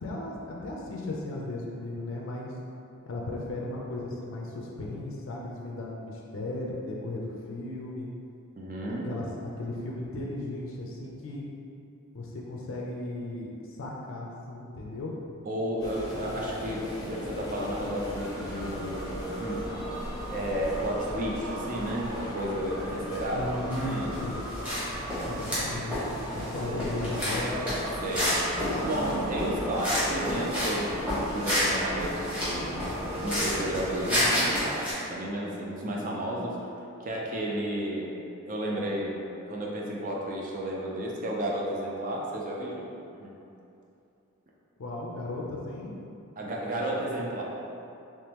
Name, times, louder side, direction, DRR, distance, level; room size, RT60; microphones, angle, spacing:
voice 1, 0.0-2.6 3.1-8.1 9.0-9.3 9.6-11.4 12.1-15.1 23.3-24.4 25.2-27.8 44.8-45.9, left 2 dB, 65° left, -2 dB, 0.4 m, -36 dB
voice 2, 8.6-9.1 15.5-19.7 19.9-20.0 20.3-23.5 23.8-24.4 25.0-25.4 26.7-26.9 28.0-28.5 28.8-32.8 33.2-36.6 37.0-38.1 38.5-39.2 39.5-42.9 43.2-43.4 46.4-47.4, right 1 dB, 40° right, -3 dB, 0.5 m, -32 dB
sound 1, 15.8-34.3, left 1 dB, 20° left, 0.6 m, -37 dB
sound 2, 18.1-34.6, right 1 dB, 75° right, 0.8 m, -41 dB
sound 3, 23.7-24.8 25.1-30.8 31.1-34.9, equal, 5° right, 1.1 m, -30 dB
3.5 x 3.0 x 2.9 m, 2.7 s
head